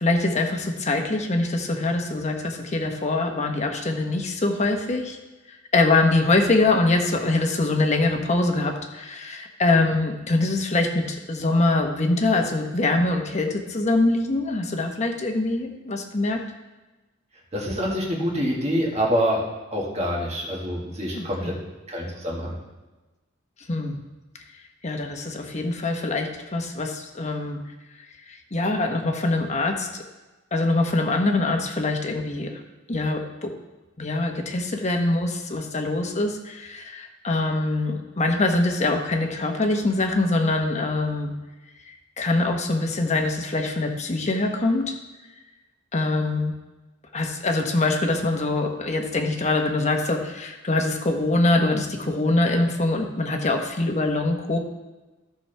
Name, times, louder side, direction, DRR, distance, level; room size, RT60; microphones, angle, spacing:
voice 1, 0.0-5.2 5.5-16.4 21.1-21.5 23.7-24.0 24.8-27.6 28.3-30.0 30.5-32.6 32.9-33.5 34.0-41.3 41.9-44.9 45.9-46.5 47.1-54.6, left 2 dB, 35° left, 3 dB, 1.1 m, -24 dB
voice 2, 17.5-19.4 19.7-21.5 21.9-22.6, equal, 35° right, -3 dB, 1.9 m, -26 dB
14.5 x 6.2 x 3.4 m, 1.1 s
head